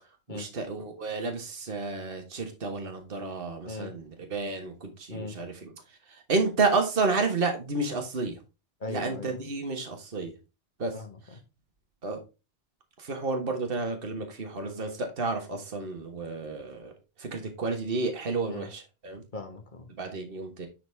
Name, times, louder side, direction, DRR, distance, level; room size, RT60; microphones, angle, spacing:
voice 1, 0.3-4.0 4.3-5.7 6.1-8.4 8.9-10.3 10.8-10.9 12.0-12.2 13.0-16.9 17.2-19.2 20.0-20.7, right 3 dB, 60° right, 1.6 m, -31 dB
voice 2, 3.6-4.0 5.1-5.4 8.8-9.4 10.9-11.4 18.5-18.7 19.3-19.9, left 4 dB, 50° left, 1.6 m, -39 dB
10.5 x 4.1 x 3.4 m
omnidirectional pair, 1.1 m